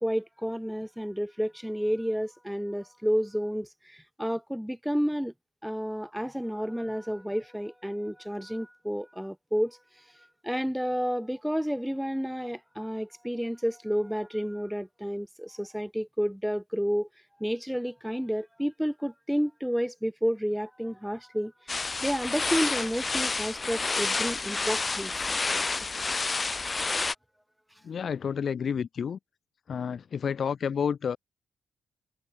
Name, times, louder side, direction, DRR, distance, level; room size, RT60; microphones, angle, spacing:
voice 1, 0.0-5.3 5.6-9.8 10.4-17.1 17.4-21.5 22.0-25.1, equal, ahead, 2.3 m, -30 dB
sound 1, 21.7-27.1, left 3 dB, 35° left, 1.5 m, -29 dB
voice 2, 27.8-29.2 29.7-31.2, left 7 dB, 60° left, 1.0 m, -30 dB
supercardioid pair, 55°, 0 cm